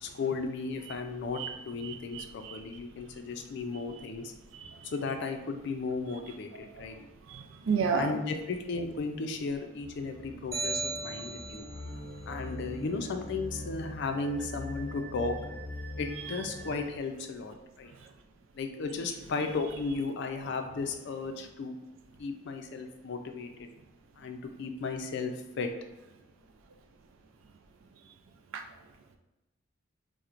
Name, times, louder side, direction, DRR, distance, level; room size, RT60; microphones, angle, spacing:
voice 1, 0.0-4.3 4.8-7.0 7.9-11.7 12.3-15.4 16.0-17.9 18.6-21.8 22.2-23.7 24.2-25.7, left 4 dB, 60° left, 5 dB, 0.4 m, -35 dB
voice 2, 1.9-2.6 4.6-4.7 7.3-8.1 28.5-28.6, right 5 dB, 80° right, 6 dB, 0.4 m, -31 dB
sound 1, 9.8-16.8, equal, 60° right, 1.2 m, -42 dB
sound 2, 10.5-11.9, right 3 dB, 15° right, 0.6 m, -35 dB
4.3 x 2.1 x 2.4 m, 1.0 s
head